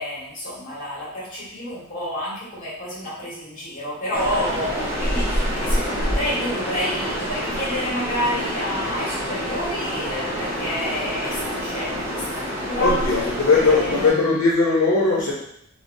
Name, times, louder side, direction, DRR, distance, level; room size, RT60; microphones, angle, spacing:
voice 1, 0.0-13.0 13.6-14.4, left 1 dB, 40° left, -7 dB, 1.5 m, -29 dB
sound 1, 4.1-14.1, equal, 10° right, 1.0 m, -27 dB
voice 2, 12.8-15.3, left 3 dB, 75° left, -5 dB, 0.6 m, -19 dB
3.3 x 3.0 x 2.6 m, 0.72 s
head